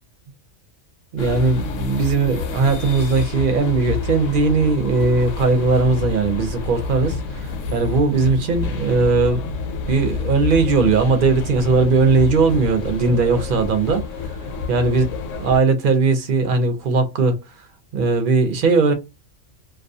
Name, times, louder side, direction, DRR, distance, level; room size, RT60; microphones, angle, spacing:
voice 1, 1.1-9.4 9.9-14.1 14.7-15.1 15.3-17.4 17.9-18.9, right 4 dB, 55° right, 0.7 m, -18 dB
sound 1, 1.2-15.6, left 4 dB, 80° left, 0.9 m, -28 dB
2.4 x 2.2 x 2.6 m
omnidirectional pair, 1.3 m